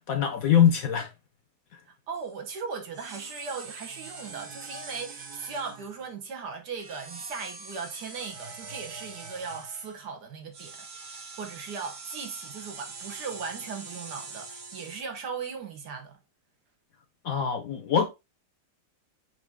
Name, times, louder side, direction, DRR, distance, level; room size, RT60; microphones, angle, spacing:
voice 1, 0.1-1.1 17.2-18.1, left 8 dB, 65° left, 0.9 m, -23 dB
sound 1, 2.1-2.4 2.9-6.1 6.7-10.0 10.5-15.0, right 4 dB, 55° right, 0.5 m, -43 dB
voice 2, 2.1-16.2, right 5 dB, 70° right, 1.6 m, -38 dB
5.7 x 2.7 x 3.4 m
omnidirectional pair, 1.9 m